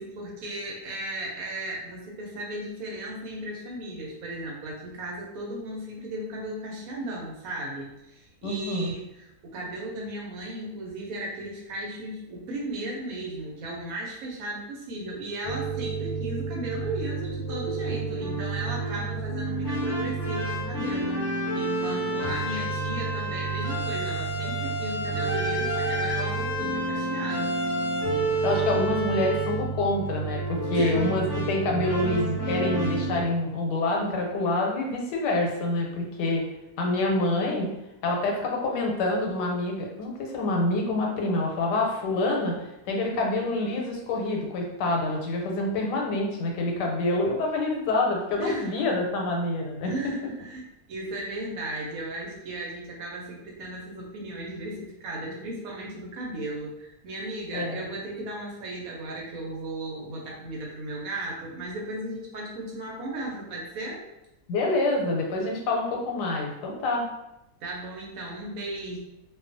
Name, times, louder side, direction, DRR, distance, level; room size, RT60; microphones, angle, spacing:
voice 1, 0.0-21.2 21.5-27.5 30.7-30.9 31.9-32.0 48.4-48.7 49.8-50.6 50.9-64.0 67.6-69.0, right 1 dB, 70° right, -2 dB, 0.9 m, -36 dB
voice 2, 8.4-8.9 28.4-36.4 36.8-37.7 38.0-49.9 57.5-57.9 64.5-67.1, left 2 dB, 90° left, 0 dB, 1.2 m, -27 dB
sound 1, 15.4-33.2, right 2 dB, 55° left, 0.9 m, -29 dB
2.5 x 2.3 x 2.5 m, 0.90 s
omnidirectional pair, 1.8 m